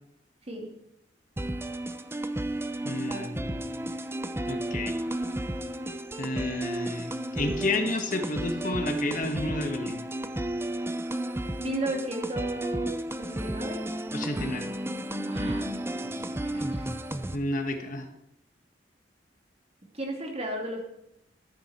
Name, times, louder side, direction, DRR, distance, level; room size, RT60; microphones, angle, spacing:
sound 1, 1.4-17.4, right 1 dB, 15° right, 0.6 m, -33 dB
voice 1, 2.8-3.7 4.5-4.9 6.2-10.0 14.1-14.7 16.0-16.2 17.3-18.1, left 2 dB, 50° left, 6 dB, 1.4 m, -31 dB
voice 2, 11.6-13.8 15.2-15.7 16.4-16.9 19.9-20.8, right 1 dB, 35° right, 1 dB, 2.7 m, -34 dB
13.5 x 8.8 x 4.3 m, 0.81 s
head